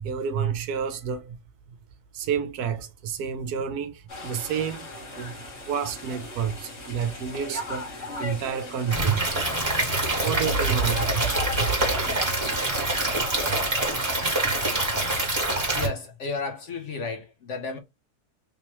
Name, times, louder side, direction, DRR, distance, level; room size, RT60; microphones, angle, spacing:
voice 1, 0.0-1.4 2.1-4.9 5.2-5.4 5.7-7.9 8.2-9.2 10.2-11.8, right 6 dB, 75° right, 1.2 m, -29 dB
sound 1, 4.1-15.3, left 2 dB, 45° left, 1.8 m, -38 dB
Stream / Liquid, 8.9-15.9, right 2 dB, 15° right, 1.7 m, -25 dB
voice 2, 15.7-17.8, left 4 dB, 60° left, 0.8 m, -33 dB
3.4 x 3.0 x 2.9 m
omnidirectional pair, 1.7 m